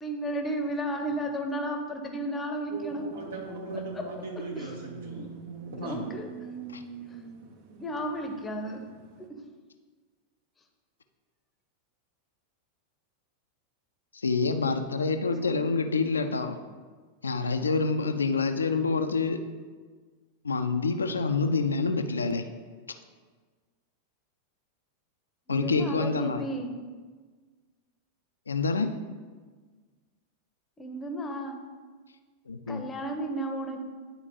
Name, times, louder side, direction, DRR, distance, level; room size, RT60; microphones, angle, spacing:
voice 1, 0.0-3.0 3.7-4.1 4.3-4.8 5.8-6.3 7.1-7.2 7.8-8.8 9.2-9.3 15.0-15.8 25.5-26.7 30.8-31.6 32.7-33.8, right 1 dB, 15° left, 4 dB, 0.8 m, -33 dB
sound 1, 2.7-9.3, right 5 dB, 45° right, 0.7 m, -42 dB
voice 2, 3.1-5.3 5.8-6.1, right 1 dB, 65° right, 0 dB, 1.4 m, -39 dB
voice 3, 14.1-16.6 17.2-19.4 20.4-22.4 25.5-26.4 28.5-28.9 32.5-32.8, left 4 dB, 75° left, 8 dB, 0.4 m, -27 dB
10.0 x 4.3 x 2.8 m, 1.5 s
figure-of-eight pair, 90°, 0 cm